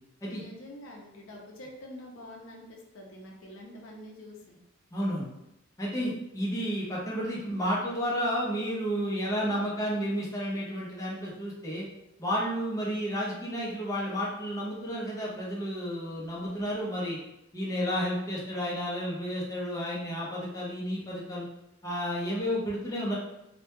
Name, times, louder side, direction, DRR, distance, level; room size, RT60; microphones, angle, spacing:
voice 1, 0.3-4.6, left 1 dB, 75° left, -1 dB, 0.5 m, -46 dB
voice 2, 4.9-5.3 5.8-11.8 12.2-17.2 17.5-21.5 21.8-23.2, equal, 15° left, -5 dB, 0.5 m, -31 dB
2.1 x 2.1 x 2.8 m, 0.86 s
head